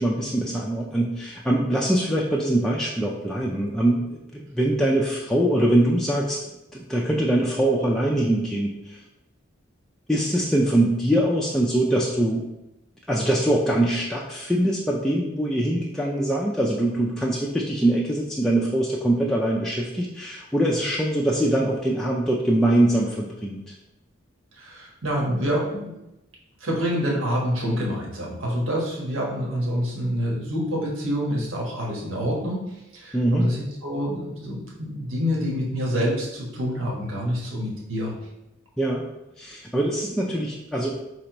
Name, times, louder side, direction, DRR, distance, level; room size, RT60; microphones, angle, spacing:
voice 1, 0.0-9.0 10.1-12.4 13.1-23.7 33.1-33.5 38.8-39.0 39.4-40.9, right 1 dB, ahead, -4 dB, 0.3 m, -23 dB
voice 2, 24.6-26.0 26.6-32.7 32.9-38.2, equal, 75° right, -3 dB, 1.3 m, -27 dB
5.1 x 3.3 x 2.9 m, 0.92 s
head